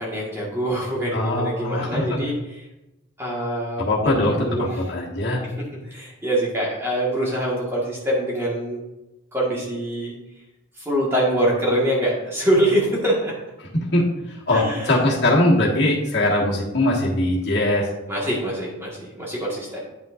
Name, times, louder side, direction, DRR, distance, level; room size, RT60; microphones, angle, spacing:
voice 1, 0.0-2.3 3.2-4.1 4.5-4.8 5.4-5.5 5.8-8.8 9.3-10.1 10.8-13.3 14.5-15.0 18.1-19.9, right 1 dB, 15° right, -5 dB, 1.6 m, -24 dB
voice 2, 1.1-2.2 3.8-4.5 4.9-5.4 13.9-14.1 14.5-17.9, left 1 dB, 55° left, -4 dB, 1.7 m, -21 dB
9.4 x 5.6 x 2.6 m, 0.99 s
head